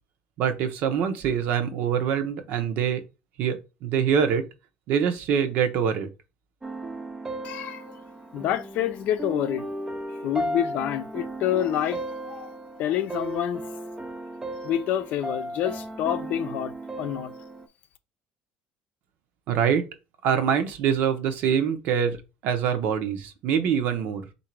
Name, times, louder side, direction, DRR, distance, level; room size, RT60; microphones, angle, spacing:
voice 1, 0.4-3.0 3.4-4.4 4.9-6.1 19.5-19.8 20.2-22.2 22.4-24.2, right 7 dB, 65° right, 0.9 m, -24 dB
sound 1, 6.6-17.7, right 1 dB, 15° right, 0.6 m, -35 dB
voice 2, 7.4-8.0 8.3-9.7 10.2-12.5 12.8-13.6 14.6-17.3, left 11 dB, 60° left, 0.6 m, -28 dB
3.8 x 2.7 x 4.6 m
cardioid pair, 115°, 3 cm